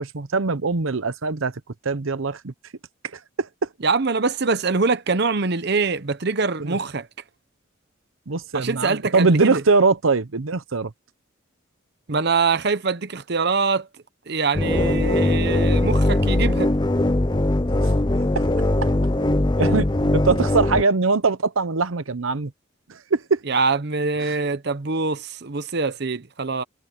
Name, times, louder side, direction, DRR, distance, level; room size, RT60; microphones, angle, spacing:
voice 1, 0.0-1.5 1.8-2.5 3.4-3.5 6.6-6.8 8.3-10.9 18.2-18.4 19.6-19.9 20.1-22.5 22.9-23.4 24.2-24.3, right 4 dB, 80° right, 0.9 m, -22 dB
voice 2, 3.8-7.1 8.5-9.6 12.1-13.9 14.3-16.7 23.5-26.6, right 4 dB, 55° right, 0.9 m, -24 dB
sound 1, 14.5-20.8, left 1 dB, 20° left, 0.7 m, -20 dB
head